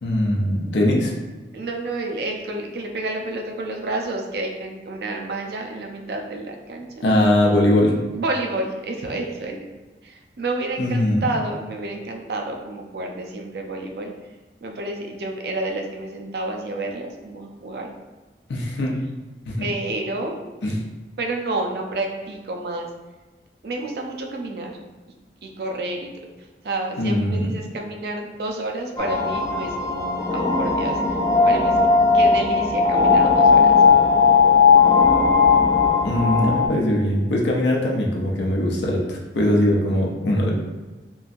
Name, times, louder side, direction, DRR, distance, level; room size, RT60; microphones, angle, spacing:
voice 1, 0.0-1.1 7.0-8.0 10.8-11.3 18.5-18.9 19.5-19.7 20.6-20.8 27.0-27.5 36.0-40.5, left 1 dB, 80° left, -2 dB, 0.5 m, -21 dB
voice 2, 1.5-7.1 8.1-9.6 10.0-14.1 14.6-17.9 19.6-20.4 21.2-22.9 23.6-24.8 25.4-26.1 26.4-31.8 32.1-33.8, right 2 dB, 60° right, 2 dB, 0.4 m, -30 dB
sound 1, 29.0-36.7, left 5 dB, 20° left, 0.3 m, -17 dB
3.0 x 2.6 x 2.4 m, 1.2 s
head